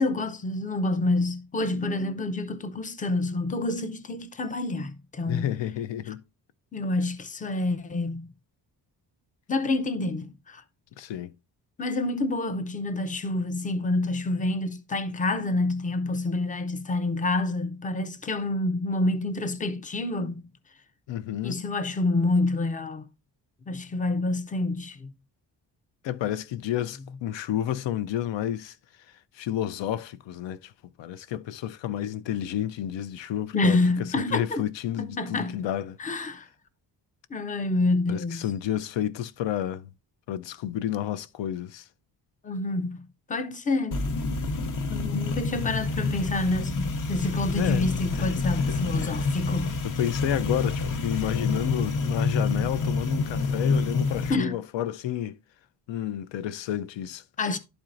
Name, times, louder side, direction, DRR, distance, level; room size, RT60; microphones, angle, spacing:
voice 1, 0.0-5.6 6.7-8.3 9.5-10.6 11.8-20.5 21.4-23.0 23.7-25.1 33.5-34.6 35.0-35.6 36.0-36.5 37.3-38.5 42.4-43.0 43.3-44.1 44.9-49.8 54.3-54.6 57.4-57.6, left 2 dB, 20° left, 0.4 m, -28 dB
voice 2, 5.3-6.2 11.0-11.4 21.1-21.6 26.0-28.8 29.3-33.8 34.2-36.0 38.1-39.9 40.3-41.9 47.5-47.9 48.1-49.2 49.8-55.4 55.9-57.2, left 11 dB, 85° left, 0.6 m, -30 dB
sound 1, 43.9-54.3, left 3 dB, 45° left, 0.7 m, -28 dB
11.5 x 4.4 x 2.5 m
wide cardioid pair, 170°, 43 cm